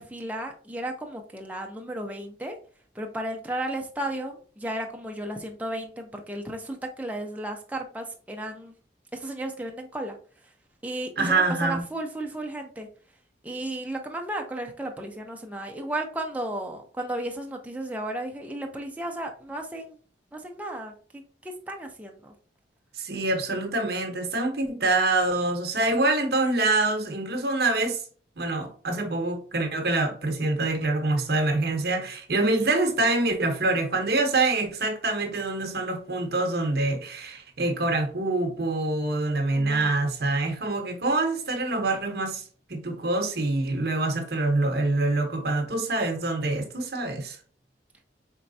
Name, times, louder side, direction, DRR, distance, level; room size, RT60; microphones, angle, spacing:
voice 1, 0.0-2.6 2.9-8.7 9.1-10.1 10.8-12.9 13.4-20.0 20.3-22.3 39.5-40.1, right 1 dB, 10° right, 0.6 m, -34 dB
voice 2, 11.2-11.8 23.0-28.0 28.4-42.4 42.7-47.4, right 2 dB, 55° right, 0.9 m, -25 dB
4.5 x 3.1 x 2.7 m
head